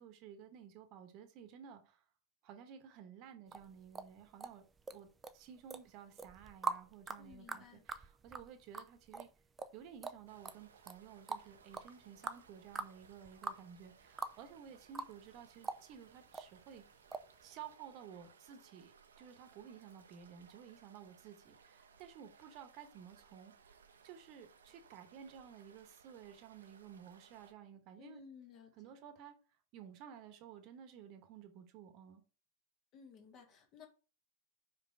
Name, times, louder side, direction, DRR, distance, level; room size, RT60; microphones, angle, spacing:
voice 1, 0.0-2.0 2.4-4.6 4.9-5.1 5.3-9.3 9.7-16.8 17.4-23.8 24.0-28.2 28.8-29.3 29.7-32.2, right 8 dB, 40° right, 1.2 m, -54 dB
sound 1, 3.5-5.0 5.2-5.8 6.2-14.4 14.7-15.4 15.6-16.5 17.1-17.3 17.7-17.8, right 4 dB, 15° right, 0.5 m, -43 dB
voice 2, 7.2-7.8 28.0-29.0 32.9-33.9, left 6 dB, 35° left, 1.7 m, -57 dB
sound 2, 10.3-27.5, right 6 dB, 70° right, 0.8 m, -64 dB
5.2 x 5.1 x 4.6 m
figure-of-eight pair, 90°, 0 cm